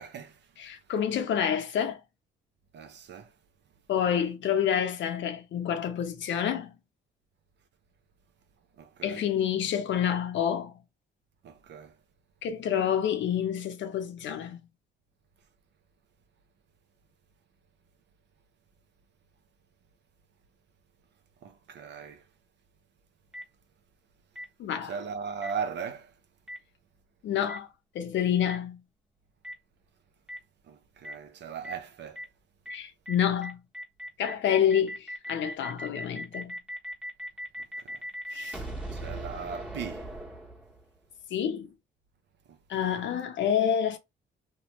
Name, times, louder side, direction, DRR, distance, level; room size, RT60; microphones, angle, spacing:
voice 1, 0.0-0.4 2.7-3.3 8.8-9.3 11.4-12.0 21.4-22.2 24.8-26.1 30.7-32.2 37.8-38.0 38.3-40.1 42.5-43.0, right 6 dB, 60° right, 0.6 m, -39 dB
voice 2, 0.6-2.0 3.9-6.7 9.0-10.8 12.4-14.6 24.6-24.9 27.2-27.7 27.9-28.8 32.7-33.6 34.2-36.6 38.3-38.6 41.3-41.7 42.7-44.0, left 9 dB, 70° left, 0.7 m, -28 dB
Boom, 23.3-23.4 24.4-24.5 25.4-25.5 26.5-26.6 27.5-27.6 28.5-28.6 29.4-29.5 30.3-30.4 31.0-31.1 31.6-31.7 32.2-32.3 32.7-32.8 33.1-33.2 33.4-41.0, equal, 5° right, 1.1 m, -38 dB
2.9 x 2.2 x 3.0 m
cardioid pair, 90°, 20 cm